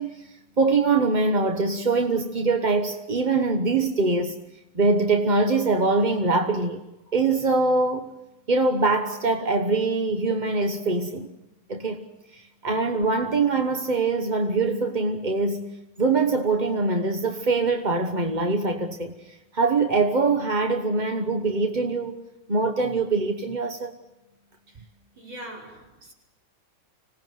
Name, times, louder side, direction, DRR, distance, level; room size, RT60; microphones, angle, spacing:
voice 1, 0.0-4.4 4.7-6.8 7.1-8.1 8.5-11.3 11.7-12.0 12.3-15.7 16.0-22.2 22.5-23.9, right 3 dB, 30° right, 0.9 m, -23 dB
voice 2, 25.2-26.1, right 1 dB, 70° right, 6.5 m, -42 dB
26.0 x 17.5 x 9.4 m
omnidirectional pair, 2.3 m